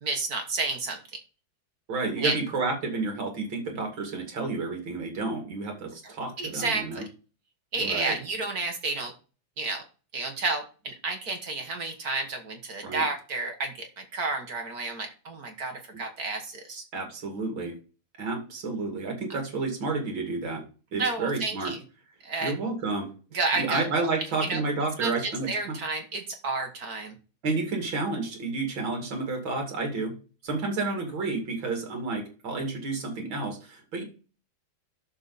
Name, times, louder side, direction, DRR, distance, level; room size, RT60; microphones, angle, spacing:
voice 1, 0.0-1.2 2.2-2.4 6.0-7.0 7.7-9.1 9.6-9.8 10.1-16.8 21.0-21.8 22.2-22.6 23.3-24.1 24.5-24.6 25.0-27.1, right 3 dB, 50° right, 4 dB, 1.7 m, -31 dB
voice 2, 1.9-7.0 7.8-8.2 12.8-13.0 16.9-17.8 18.2-20.6 20.9-21.7 22.4-23.1 23.5-25.8 27.4-30.2 30.4-34.0, right 3 dB, 70° right, 3 dB, 2.9 m, -30 dB
9.8 x 6.9 x 4.1 m, 0.36 s
omnidirectional pair, 2.2 m